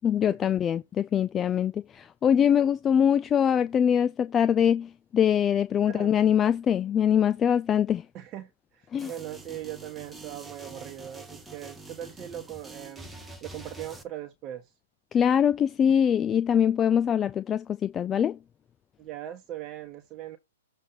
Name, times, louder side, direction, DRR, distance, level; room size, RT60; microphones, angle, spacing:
voice 1, 0.0-8.0 8.9-9.1 15.1-18.4, left 8 dB, 20° left, 0.4 m, -23 dB
voice 2, 5.8-6.2 8.1-14.7 19.0-20.4, right 12 dB, 25° right, 1.2 m, -40 dB
sound 1, 9.0-14.0, right 2 dB, 5° right, 1.2 m, -45 dB
7.4 x 3.3 x 5.6 m
hypercardioid pair, 130°, 0 cm